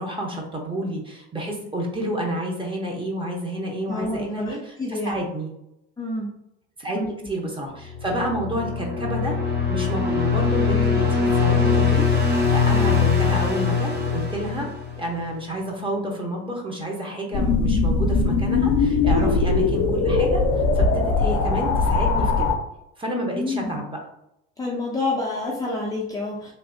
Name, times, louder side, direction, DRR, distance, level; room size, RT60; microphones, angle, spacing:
voice 1, 0.0-5.5 6.8-14.7 15.0-22.5 23.0-24.0, right 1 dB, 15° right, 0 dB, 0.9 m, -30 dB
voice 2, 3.9-5.1 6.0-6.3 6.9-7.1 19.1-19.4 23.3-23.8 24.6-26.5, left 2 dB, 10° left, -5 dB, 0.6 m, -28 dB
sound 1, 7.9-15.2, left 5 dB, 30° right, 1.2 m, -22 dB
sound 2, 17.3-22.6, left 3 dB, 50° left, 0.7 m, -20 dB
3.3 x 2.6 x 2.7 m, 0.81 s
supercardioid pair, 100°, 33 cm